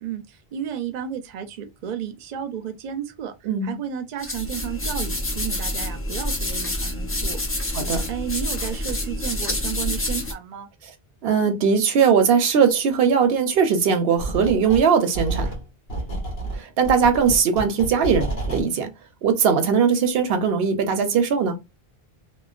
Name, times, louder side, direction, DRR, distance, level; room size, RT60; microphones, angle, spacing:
voice 1, 0.0-7.8 8.1-10.7, right 9 dB, 55° right, 0.6 m, -33 dB
voice 2, 3.5-3.8 7.7-8.0 11.2-15.5 16.5-18.9 19.2-21.6, right 6 dB, 80° right, 0.8 m, -20 dB
sound 1, 4.2-10.3, left 1 dB, 20° left, 0.4 m, -27 dB
sound 2, 14.2-14.9 15.1-18.7, right 2 dB, 80° left, 1.5 m, -29 dB
2.9 x 2.2 x 2.4 m
omnidirectional pair, 1.0 m